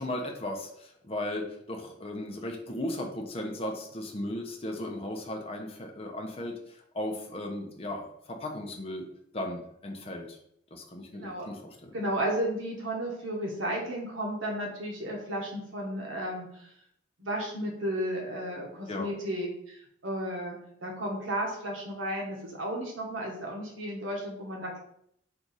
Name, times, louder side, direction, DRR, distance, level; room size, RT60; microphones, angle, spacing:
voice 1, 0.0-9.1 9.3-10.4 10.7-11.9 18.9-19.1, left 1 dB, 30° left, 2 dB, 0.7 m, -36 dB
voice 2, 11.1-11.5 11.9-16.6 17.2-24.8, right 1 dB, 85° right, -1 dB, 1.2 m, -33 dB
4.6 x 2.5 x 4.1 m, 0.71 s
head